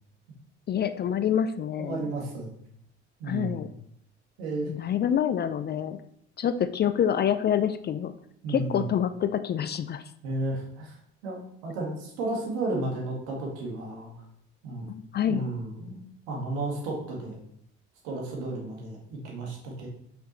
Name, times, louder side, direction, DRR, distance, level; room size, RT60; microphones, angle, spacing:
voice 1, 0.7-2.0 3.3-3.7 4.7-6.0 6.4-8.1 8.5-10.0 14.9-15.5, left 9 dB, 30° left, 11 dB, 0.4 m, -27 dB
voice 2, 1.8-2.5 3.2-3.7 4.4-4.7 8.4-8.9 10.2-11.0 11.2-14.1 14.6-14.9 15.3-16.0 16.3-17.4 18.0-19.9, right 2 dB, 75° right, -1 dB, 1.8 m, -33 dB
5.9 x 5.1 x 3.0 m, 0.70 s
hypercardioid pair, 60°, 33 cm